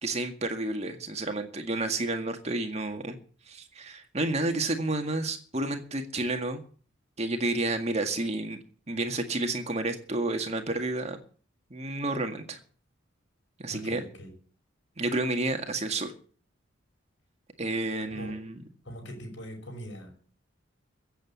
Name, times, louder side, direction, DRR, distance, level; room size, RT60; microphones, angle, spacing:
voice 1, 0.0-3.2 3.5-6.6 7.2-8.6 8.9-11.2 11.7-12.6 13.6-14.0 15.0-16.1 17.6-18.6, right 2 dB, 35° right, 6 dB, 1.9 m, -30 dB
voice 2, 13.7-14.3 18.1-18.3 18.8-20.1, equal, 65° left, 1 dB, 5.7 m, -42 dB
15.5 x 8.0 x 8.5 m, 0.44 s
head